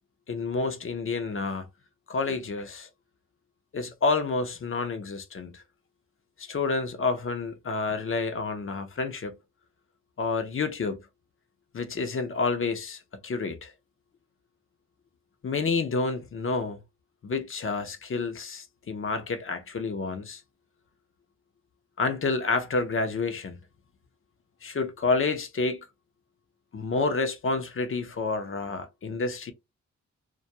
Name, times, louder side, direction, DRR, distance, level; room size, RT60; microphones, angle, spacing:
voice 1, 0.3-1.7 2.1-2.9 3.7-5.6 6.4-9.4 10.2-11.0 11.7-13.7 15.4-16.8 17.2-20.4 22.0-23.6 24.6-25.8 26.7-29.5, left 4 dB, 45° left, 0.6 m, -29 dB
2.3 x 2.2 x 2.7 m
cardioid pair, 70°, 30 cm